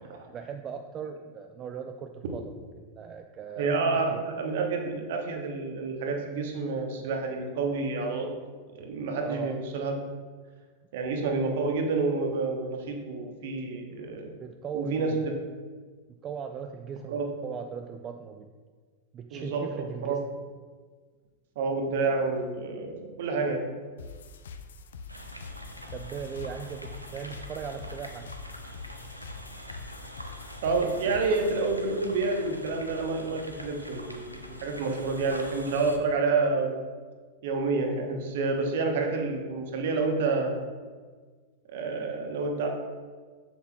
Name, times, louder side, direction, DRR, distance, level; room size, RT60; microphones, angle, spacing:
voice 1, 0.0-3.7 4.1-4.2 9.2-9.6 14.4-15.4 16.2-18.5 19.1-20.2 25.9-28.3, right 7 dB, 30° right, 5 dB, 0.3 m, -39 dB
voice 2, 3.5-8.3 8.7-9.9 10.9-14.3 14.7-15.3 17.1-17.2 19.3-20.2 21.6-23.7 30.6-36.8 37.4-40.6 41.7-42.7, right 3 dB, 55° right, 3 dB, 1.0 m, -29 dB
sound 1, 24.0-31.6, left 5 dB, 65° left, 0.4 m, -45 dB
sound 2, 25.1-36.0, left 1 dB, 90° right, 0.6 m, -44 dB
7.2 x 7.1 x 2.3 m, 1.5 s
figure-of-eight pair, 90°, 0 cm